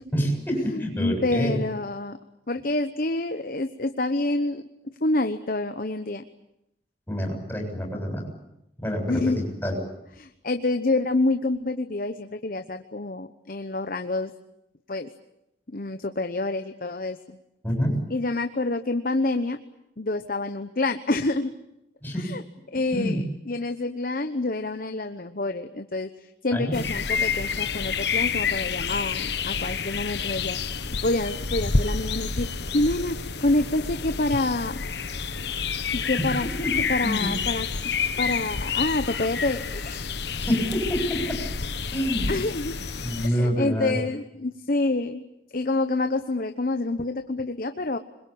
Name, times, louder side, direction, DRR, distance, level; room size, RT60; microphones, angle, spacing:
voice 1, 0.1-1.6 7.1-8.2 8.8-9.7 17.6-17.9 22.0-22.3 22.7-23.2 26.5-26.8 36.2-36.3 36.6-36.7 37.0-37.3 40.4-41.2 41.9-42.3 43.0-43.9, equal, 10° left, 1 dB, 7.8 m, -27 dB
voice 2, 0.7-2.2 2.5-4.6 5.0-6.3 9.1-9.4 10.2-14.3 14.9-15.1 15.7-17.4 18.1-19.6 20.0-21.5 22.2-22.4 22.7-32.5 32.7-34.8 35.9-36.5 36.9-37.7 38.2-40.1 41.8-42.0 42.3-42.9 43.2-45.2 45.5-48.0, left 2 dB, 50° left, 8 dB, 1.0 m, -27 dB
sound 1, 26.7-43.3, left 5 dB, 70° left, 1.3 m, -29 dB
26.0 x 22.5 x 8.7 m, 0.84 s
head